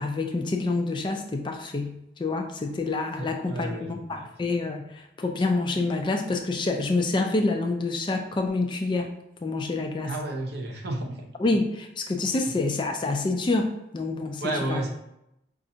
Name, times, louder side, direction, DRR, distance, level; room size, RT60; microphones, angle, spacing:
voice 1, 0.0-1.9 2.2-9.1 9.4-10.1 11.4-14.8, left 3 dB, 25° left, 4 dB, 0.3 m, -27 dB
voice 2, 3.2-4.1 10.0-11.3 12.4-12.5 14.4-14.9, right 2 dB, 60° right, 1 dB, 0.7 m, -32 dB
5.0 x 2.4 x 2.7 m, 0.82 s
head